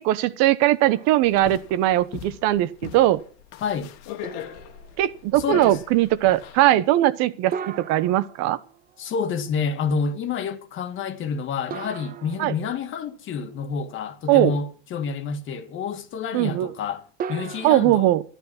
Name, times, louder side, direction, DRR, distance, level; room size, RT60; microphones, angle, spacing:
voice 1, 0.0-3.2 5.0-8.6 12.4-12.5 14.3-14.5 16.3-16.7 17.6-18.2, right 14 dB, 50° right, 1.0 m, -20 dB
sound 1, 0.9-1.8 2.3-2.4 4.2-5.1 7.5-9.1 11.7-13.0 17.2-17.7, right 7 dB, 25° right, 0.8 m, -37 dB
sound 2, 1.2-6.6, left 11 dB, 50° left, 1.7 m, -39 dB
voice 2, 3.6-3.9 5.4-5.8 9.0-18.2, left 5 dB, 35° left, 1.8 m, -28 dB
12.5 x 12.0 x 6.1 m
supercardioid pair, 120°, 34 cm